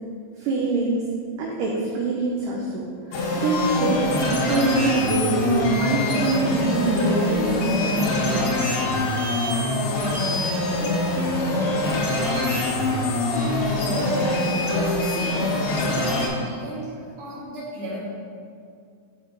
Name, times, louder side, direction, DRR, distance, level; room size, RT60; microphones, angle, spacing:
voice 1, 0.4-1.0 1.4-8.5, right 3 dB, 75° right, -3 dB, 2.0 m, -25 dB
sound 1, 3.1-16.3, left 2 dB, 85° left, 3.2 m, -24 dB
voice 2, 13.5-15.4 15.9-18.0, right 1 dB, 60° right, -11 dB, 2.5 m, -33 dB
9.5 x 3.9 x 4.7 m, 2.3 s
omnidirectional pair, 4.5 m